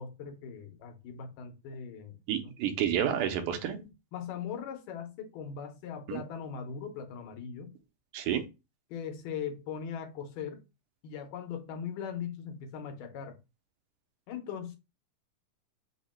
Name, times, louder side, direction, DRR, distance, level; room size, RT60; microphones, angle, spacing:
voice 1, 0.0-2.5 4.1-7.7 8.9-10.6 11.0-13.4 14.3-14.8, left 7 dB, 90° left, 2.4 m, -40 dB
voice 2, 2.3-3.8 6.1-6.2 8.1-8.4, right 9 dB, 85° right, 2.2 m, -30 dB
5.6 x 2.1 x 4.1 m
omnidirectional pair, 3.7 m